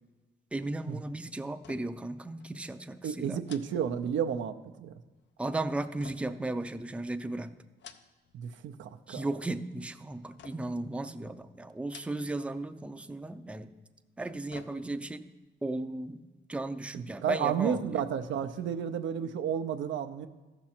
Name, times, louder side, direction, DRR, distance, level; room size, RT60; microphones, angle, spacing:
voice 1, 0.5-3.4 5.4-7.5 9.1-13.7 14.2-15.3 15.6-16.2 16.5-18.0, right 2 dB, 5° right, 9 dB, 0.4 m, -35 dB
sound 1, 1.5-2.1 2.4-2.6 3.4-4.5 6.0-7.1 7.6-8.4 8.7-9.3 10.4-10.9 11.8-12.5 12.8-12.9 14.0-15.2 15.6-15.7, left 7 dB, 70° left, 0.6 m, -53 dB
voice 2, 3.0-5.0 8.3-9.3 16.9-20.3, right 8 dB, 90° right, 8 dB, 0.6 m, -32 dB
14.5 x 6.1 x 4.3 m, 1.2 s
cardioid pair, 90°, 19 cm